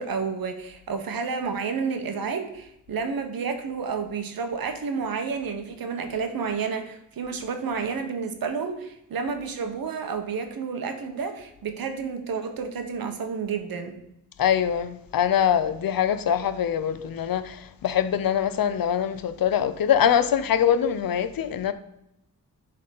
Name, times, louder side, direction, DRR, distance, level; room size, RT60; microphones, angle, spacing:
voice 1, 0.0-14.0, right 5 dB, 85° right, 1.4 m, -30 dB
voice 2, 14.4-21.7, left 9 dB, 80° left, 0.8 m, -23 dB
11.0 x 4.1 x 5.4 m
wide cardioid pair, 110°, 34 cm